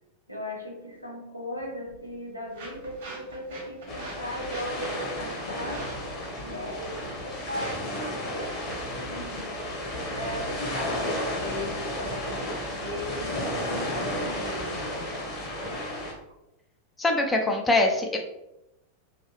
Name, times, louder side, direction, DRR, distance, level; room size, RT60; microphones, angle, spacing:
voice 1, 0.3-5.9 6.4-9.5 10.1-15.1, equal, 90° right, -1 dB, 0.7 m, -37 dB
sound 1, 1.6-11.6, right 2 dB, 60° right, 1.3 m, -46 dB
sound 2, 3.9-16.1, left 1 dB, 35° left, 1.0 m, -33 dB
sound 3, 4.1-14.9, equal, 75° left, 1.2 m, -44 dB
voice 2, 17.0-18.2, left 2 dB, 15° left, 2 dB, 0.5 m, -23 dB
3.1 x 2.6 x 2.9 m, 0.89 s
figure-of-eight pair, 90°, 0 cm